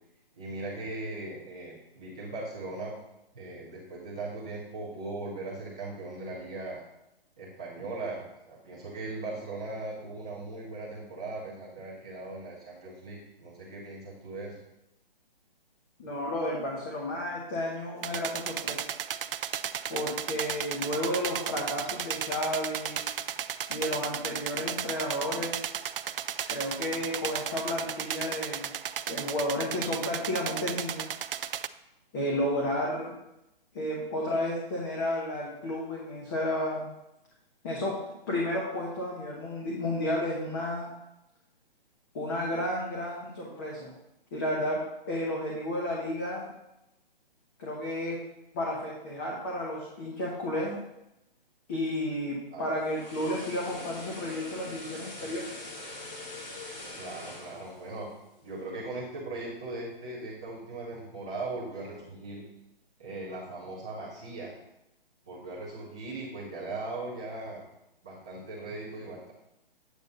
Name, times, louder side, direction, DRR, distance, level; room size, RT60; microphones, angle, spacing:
voice 1, 0.3-3.0 3.3-6.8 7.4-14.6 52.5-52.8 57.0-58.1 58.4-62.4 63.0-64.5 65.3-67.6 68.0-69.3, right 2 dB, 5° right, -7 dB, 0.5 m, -39 dB
voice 2, 16.0-18.8 19.9-23.1 23.7-25.6 26.5-28.8 29.1-31.1 32.1-33.2 33.7-36.9 37.6-38.0 38.3-40.9 42.1-43.9 44.3-44.8 45.1-46.5 47.6-48.2 48.5-50.8 51.7-55.5, left 1 dB, 20° left, -4 dB, 1.1 m, -32 dB
sound 1, 18.0-31.7, right 9 dB, 70° right, 0.5 m, -35 dB
sound 2, 52.6-58.8 59.1-59.3, left 2 dB, 45° left, 1.8 m, -44 dB
8.2 x 3.4 x 6.6 m, 0.88 s
hypercardioid pair, 170°, 29 cm